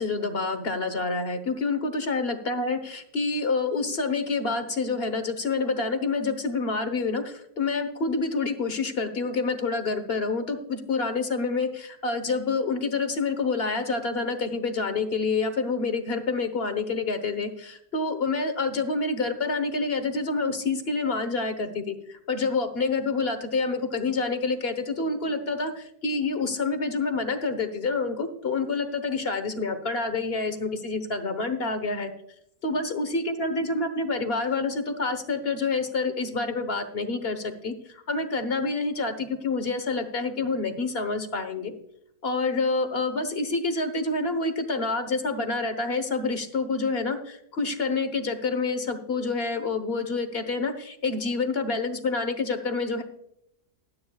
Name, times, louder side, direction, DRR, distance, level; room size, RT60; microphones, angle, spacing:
voice 1, 0.0-32.1 32.6-41.7 42.2-53.0, left 3 dB, 40° left, 9 dB, 1.3 m, -28 dB
20.0 x 9.3 x 2.4 m, 0.74 s
omnidirectional pair, 1.7 m